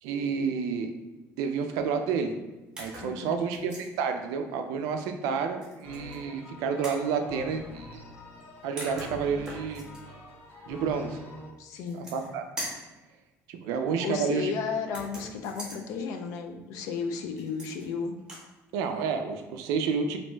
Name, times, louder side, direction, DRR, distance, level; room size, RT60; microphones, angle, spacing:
voice 1, 0.0-0.9 1.4-2.3 2.8-8.0 8.6-9.8 10.7-11.2 11.9-12.4 13.5-14.5 18.7-20.2, right 6 dB, 90° right, 6 dB, 0.3 m, -30 dB
sound 1, 2.8-3.1 3.5-3.9 5.6-6.2 6.8-7.1 8.4-8.5 8.8-10.0 11.7-12.3 12.6-12.9 14.9-15.8 17.4-17.9 18.2-18.5, right 1 dB, 15° right, 0.8 m, -41 dB
voice 2, 3.0-3.6 11.6-12.1 14.0-18.2, left 6 dB, 70° left, 4 dB, 0.4 m, -34 dB
sound 2, 5.8-11.5, left 2 dB, 40° left, 0.8 m, -45 dB
2.6 x 2.1 x 3.1 m, 1.1 s
cardioid pair, 160°, 6 cm